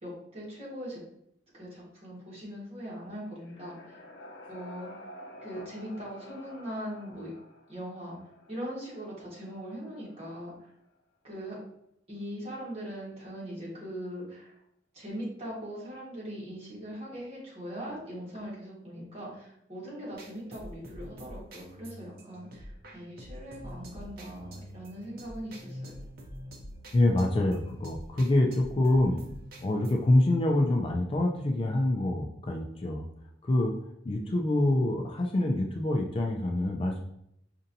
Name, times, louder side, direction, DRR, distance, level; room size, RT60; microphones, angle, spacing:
voice 1, 0.0-1.0 1.5-4.0 4.5-4.9 5.4-7.3 7.7-8.2 8.5-10.7 11.2-11.6 12.1-14.6 14.9-26.0, equal, 35° right, -6 dB, 1.5 m, -40 dB
sound 1, 3.0-10.8, left 1 dB, 85° left, 0.7 m, -51 dB
sound 2, 20.1-30.1, equal, 55° right, 0.6 m, -45 dB
voice 2, 26.9-29.2 29.6-33.1 33.4-33.7 34.0-37.0, left 1 dB, 30° left, 2 dB, 0.4 m, -26 dB
5.3 x 2.6 x 2.6 m, 0.77 s
head